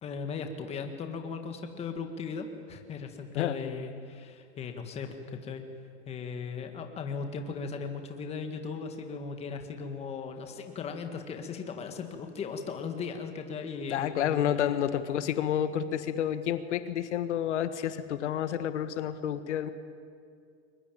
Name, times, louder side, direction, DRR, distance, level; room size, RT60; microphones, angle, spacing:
voice 1, 0.0-5.6 6.1-14.8, left 5 dB, 20° left, 5 dB, 1.8 m, -37 dB
voice 2, 13.9-19.7, left 10 dB, 80° left, 11 dB, 1.5 m, -29 dB
22.5 x 21.0 x 9.2 m, 2.3 s
supercardioid pair, 155°, 35 cm